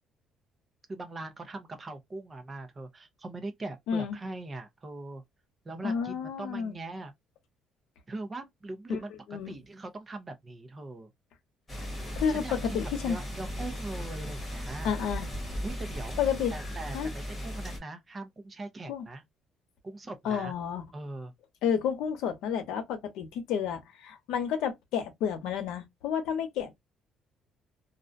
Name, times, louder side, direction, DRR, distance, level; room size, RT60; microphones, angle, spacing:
voice 1, 0.9-5.2 5.6-7.1 8.1-9.1 9.5-11.1 12.3-14.9 15.6-16.2 16.5-19.2 19.8-20.5 20.9-21.3, right 2 dB, 20° right, 0.5 m, -41 dB
voice 2, 5.8-6.7 8.9-9.0 9.3-9.5 12.1-13.2 14.8-15.3 16.2-16.5 16.9-17.1 18.9-19.0 20.2-20.8 21.6-26.7, left 7 dB, 90° left, 0.8 m, -30 dB
sound 1, 11.7-17.8, equal, 15° left, 1.1 m, -37 dB
2.4 x 2.2 x 2.5 m
cardioid pair, 175°, 0 cm